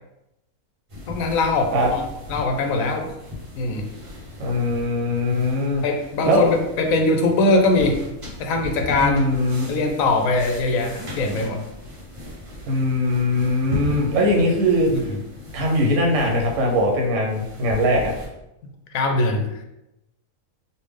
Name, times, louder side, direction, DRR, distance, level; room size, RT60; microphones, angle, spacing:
sound 1, 0.9-18.3, left 2 dB, 30° right, 0.7 m, -37 dB
voice 1, 1.1-2.0 2.3-3.1 3.6-3.8 5.8-8.0 8.4-9.2 9.7-11.6 14.9-15.2 18.6-19.5, left 2 dB, 75° left, 3 dB, 1.0 m, -21 dB
voice 2, 4.4-5.8 6.2-6.4 9.0-9.7 12.7-14.9 15.5-18.1, left 1 dB, 65° right, 0 dB, 1.0 m, -21 dB
3.4 x 2.5 x 3.3 m, 0.89 s
omnidirectional pair, 1.5 m